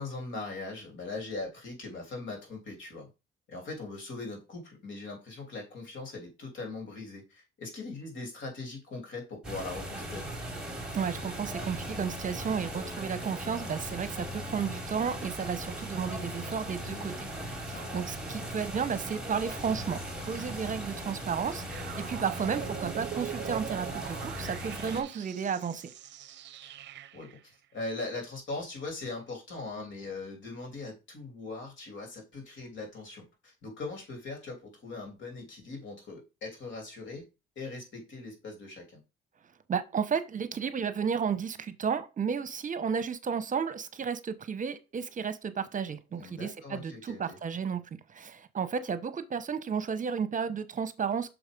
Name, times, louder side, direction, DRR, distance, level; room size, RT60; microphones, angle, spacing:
voice 1, 0.0-3.1 3.5-10.3 16.9-18.0 26.6-26.7 27.1-27.4 27.7-37.3 37.5-39.0 46.1-47.4, left 3 dB, 70° left, 3.1 m, -40 dB
sound 1, 9.4-25.0, equal, 5° right, 2.9 m, -38 dB
voice 2, 10.9-17.1 17.5-25.9 39.7-47.8 48.1-51.3, right 6 dB, 40° right, 0.8 m, -33 dB
sound 2, 21.7-27.4, right 11 dB, 65° right, 0.5 m, -42 dB
6.2 x 4.7 x 5.2 m
cardioid pair, 90°, 20 cm